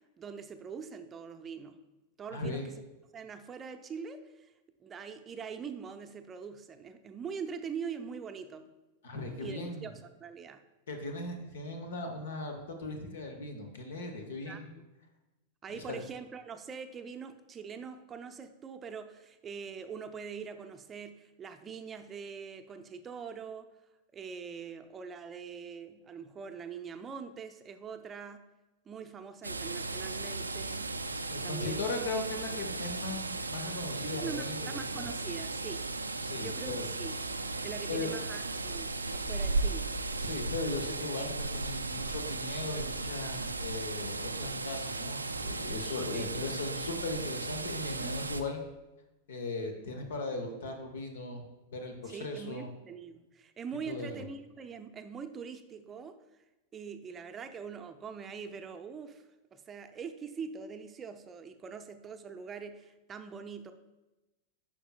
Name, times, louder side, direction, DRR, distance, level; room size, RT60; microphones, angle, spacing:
voice 1, 0.2-1.8 2.2-2.6 3.1-4.5 4.8-8.7 9.4-10.6 14.5-14.6 15.6-23.7 24.1-28.4 28.9-30.9 31.4-31.8 34.0-35.8 36.4-37.2 37.6-39.9 46.1-46.3 52.1-56.1 56.7-59.2 59.5-63.7, right 6 dB, 20° right, 7 dB, 0.5 m, -43 dB
voice 2, 2.3-2.6 9.0-9.9 10.9-14.7 15.7-16.0 31.3-35.1 36.2-36.9 37.9-38.1 40.2-48.6 49.3-51.4 51.7-52.7 53.9-54.2, left 2 dB, 60° left, 5 dB, 0.9 m, -38 dB
sound 1, 29.4-48.4, right 3 dB, 80° right, 0.3 m, -36 dB
10.0 x 5.9 x 2.3 m, 1.0 s
figure-of-eight pair, 90°, 0 cm